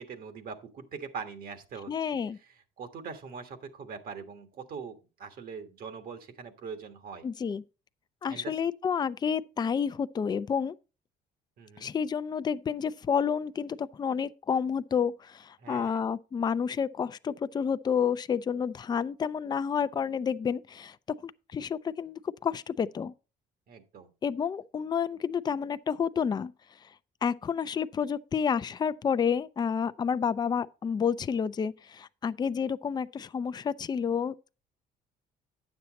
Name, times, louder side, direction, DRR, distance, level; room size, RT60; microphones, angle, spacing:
voice 1, 0.0-1.9 2.8-7.2 8.3-8.6 11.6-11.9 15.6-16.0 23.7-24.1, right 6 dB, 60° right, 1.5 m, -42 dB
voice 2, 1.9-2.4 7.2-7.6 8.2-10.7 11.8-21.0 21.2-23.1 24.2-26.5 27.2-34.6, left 7 dB, 25° left, 0.4 m, -30 dB
9.5 x 7.1 x 4.1 m
cardioid pair, 110°, 17 cm